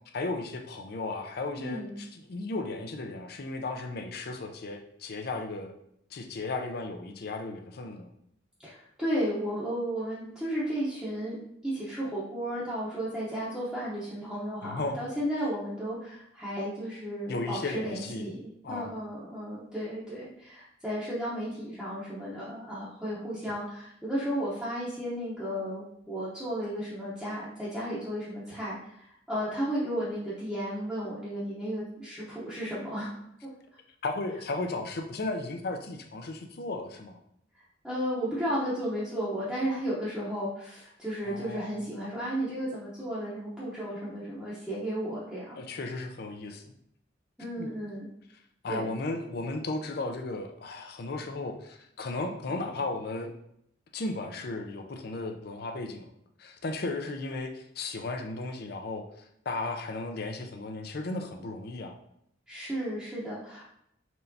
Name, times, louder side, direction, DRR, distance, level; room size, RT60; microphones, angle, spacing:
voice 1, 0.1-5.7 6.1-8.1 14.6-15.0 17.3-19.0 34.0-37.2 41.2-41.8 45.5-46.7 47.6-47.7 48.6-53.3 53.9-56.1 56.4-59.0 59.5-61.9, left 2 dB, 55° left, 5 dB, 0.5 m, -35 dB
voice 2, 1.6-1.9 8.6-33.1 33.4-33.5 37.8-45.6 47.4-48.1 48.7-48.9 62.5-63.6, equal, ahead, -10 dB, 0.8 m, -34 dB
4.4 x 3.2 x 2.7 m, 0.73 s
head